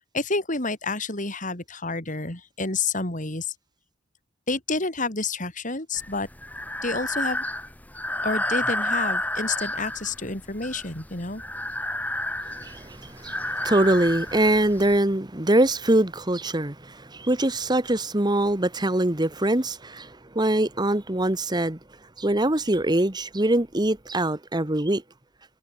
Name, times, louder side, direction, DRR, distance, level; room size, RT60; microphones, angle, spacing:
voice 1, 0.1-3.5 4.5-6.3 6.8-7.4 8.2-11.4, left 3 dB, 40° left, 4.7 m, -29 dB
Breathing, 6.0-15.0, left 1 dB, 10° left, 2.3 m, -31 dB
voice 2, 12.5-21.8 22.2-25.0, right 1 dB, 20° right, 1.4 m, -23 dB
head